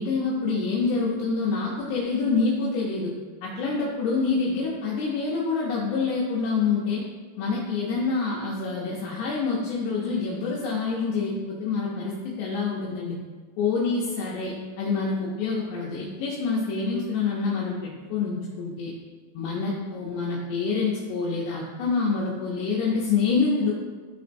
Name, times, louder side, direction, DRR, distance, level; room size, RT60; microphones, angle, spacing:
voice 1, 0.0-3.1 3.4-7.1 7.4-13.2 13.6-18.9 19.3-23.8, left 4 dB, 85° left, -4 dB, 2.4 m, -26 dB
12.5 x 4.1 x 2.6 m, 1.4 s
omnidirectional pair, 5.8 m